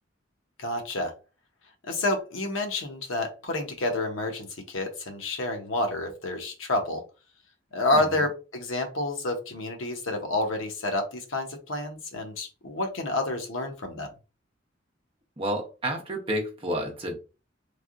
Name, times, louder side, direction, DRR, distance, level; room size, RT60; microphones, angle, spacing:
voice 1, 0.6-1.1 1.8-7.0 7.7-14.1, left 2 dB, 85° left, 4 dB, 0.9 m, -29 dB
voice 2, 15.4-17.1, right 1 dB, 30° right, 1 dB, 0.7 m, -30 dB
3.3 x 2.7 x 2.5 m, 0.31 s
head